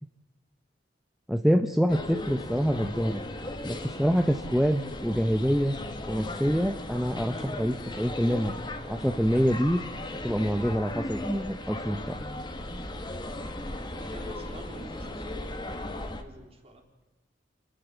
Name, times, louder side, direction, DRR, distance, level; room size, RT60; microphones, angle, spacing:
voice 1, 1.3-3.2 3.6-5.8 6.1-8.5 8.9-9.8 10.2-12.1, equal, ahead, 6 dB, 0.8 m, -26 dB
sound 1, 1.9-16.2, left 1 dB, 25° left, 1.7 m, -37 dB
voice 2, 12.8-16.9, right 1 dB, 35° right, 2 dB, 3.8 m, -50 dB
28.5 x 11.5 x 8.2 m, 1.2 s
head